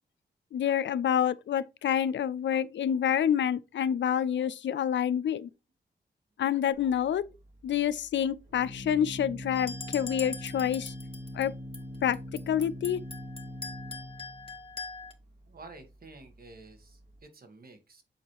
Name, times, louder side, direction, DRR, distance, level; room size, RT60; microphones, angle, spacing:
voice 1, 0.5-5.5 6.4-7.2 7.6-10.9 11.3-11.5 12.0-12.2 12.5-13.0, left 9 dB, 75° left, 0.5 m, -27 dB
Organ, 6.7-17.2, left 1 dB, 80° right, 3.7 m, -43 dB
sound 1, 9.6-11.5 11.7-15.1, left 4 dB, 30° left, 1.4 m, -42 dB
voice 2, 15.5-18.0, right 3 dB, 55° right, 1.6 m, -51 dB
7.3 x 4.2 x 3.1 m
cardioid pair, 65°, 19 cm